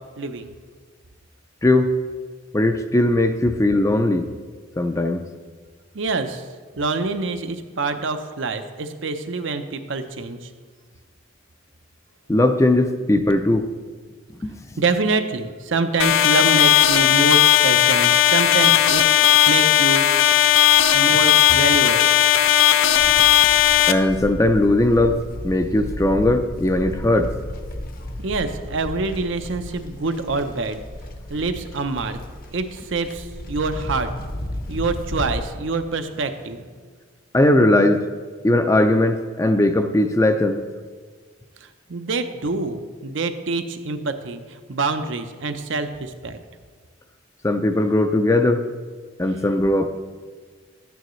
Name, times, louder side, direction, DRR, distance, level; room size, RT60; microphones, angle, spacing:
voice 1, 0.2-0.6 5.9-6.5 6.8-10.5 14.8-20.1 20.9-22.1 28.2-30.8 31.3-32.2 32.5-34.1 34.7-36.7 41.6-46.4, right 3 dB, 70° right, 8 dB, 0.7 m, -26 dB
voice 2, 1.6-1.9 2.5-4.3 4.8-5.2 12.3-13.7 14.4-14.5 23.9-27.3 37.3-38.0 38.4-40.6 47.4-48.6 49.2-49.9, left 1 dB, 15° left, 7 dB, 0.4 m, -19 dB
sound 1, 16.0-23.9, left 12 dB, 80° left, 0.5 m, -16 dB
Livestock farm animals working animals, 22.9-35.4, left 1 dB, 45° left, 0.9 m, -34 dB
12.5 x 9.1 x 3.1 m, 1.5 s
head